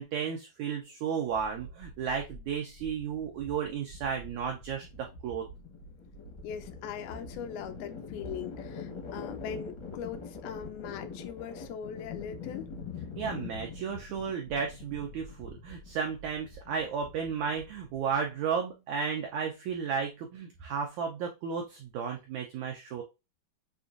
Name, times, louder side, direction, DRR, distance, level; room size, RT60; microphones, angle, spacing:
voice 1, 0.0-5.5 13.1-23.0, right 6 dB, 90° right, 1.6 m, -33 dB
sound 1, 1.2-18.3, left 4 dB, 65° left, 1.1 m, -44 dB
voice 2, 6.4-12.7, left 8 dB, 85° left, 2.5 m, -40 dB
6.8 x 2.6 x 2.5 m
omnidirectional pair, 4.3 m